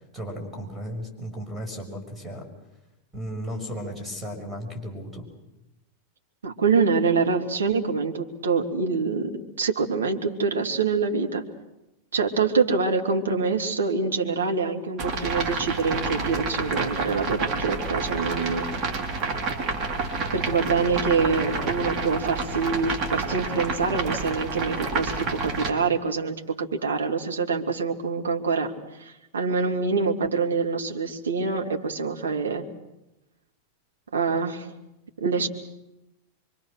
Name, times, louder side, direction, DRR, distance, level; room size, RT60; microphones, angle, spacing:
voice 1, 0.1-2.4 3.1-5.3, equal, 5° right, 2 dB, 5.9 m, -35 dB
voice 2, 6.4-9.3 9.6-11.4 12.1-18.7 20.3-28.7 29.0-32.6 34.1-34.7 35.2-35.5, right 4 dB, 70° right, 3 dB, 2.3 m, -25 dB
sound 1, 15.0-25.7, right 3 dB, 35° right, 3.7 m, -29 dB
25.5 x 24.0 x 6.5 m, 0.94 s
figure-of-eight pair, 90°, 0 cm